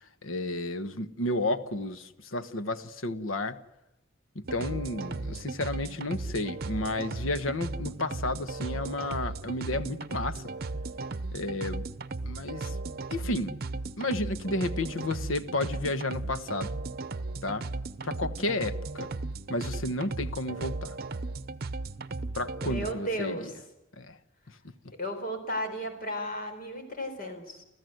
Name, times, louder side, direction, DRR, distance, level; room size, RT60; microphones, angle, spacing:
voice 1, 0.2-3.6 4.3-10.4 11.3-11.9 12.2-12.8 13.1-13.5 14.0-16.8 17.4-17.7 18.0-19.1 19.5-21.0 22.3-23.5 24.0-24.2, left 2 dB, 80° left, 11 dB, 1.2 m, -32 dB
sound 1, 4.4-22.9, right 3 dB, 50° right, 0.8 m, -36 dB
voice 2, 22.6-23.5 25.0-27.6, equal, 45° left, 6 dB, 4.4 m, -34 dB
30.0 x 14.0 x 7.9 m, 0.97 s
head